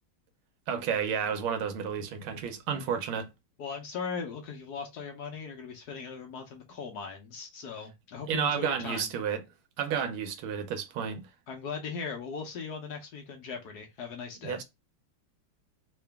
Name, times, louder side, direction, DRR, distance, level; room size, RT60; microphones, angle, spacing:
voice 1, 0.7-3.3 8.3-9.4 9.8-11.2 14.4-14.6, right 7 dB, 75° right, 1.5 m, -31 dB
voice 2, 3.6-9.1 11.5-14.6, left 5 dB, 60° left, 1.1 m, -39 dB
3.8 x 2.6 x 3.4 m
omnidirectional pair, 2.3 m